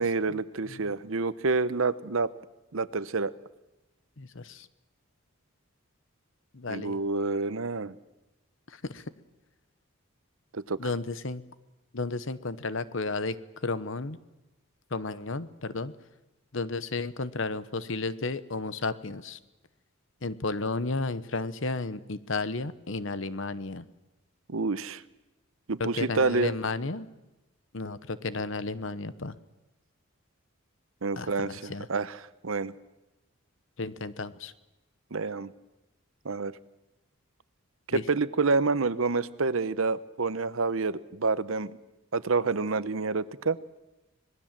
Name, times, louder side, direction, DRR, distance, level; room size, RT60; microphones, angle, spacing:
voice 1, 0.0-2.3 2.7-3.3 6.7-8.0 10.5-10.8 24.5-25.0 25.7-26.5 31.0-32.7 35.1-35.5 36.2-36.6 37.9-41.7 42.1-43.6, right 4 dB, 70° right, 16 dB, 0.8 m, -28 dB
voice 2, 4.2-4.7 6.5-7.0 8.7-9.0 10.8-11.4 11.9-13.4 13.6-14.2 14.9-15.9 16.5-19.4 20.2-23.8 25.8-27.1 27.7-29.3 31.2-31.9 33.8-34.5 37.9-38.0, left 3 dB, 60° left, 15 dB, 1.0 m, -33 dB
26.0 x 19.5 x 7.5 m, 1.0 s
head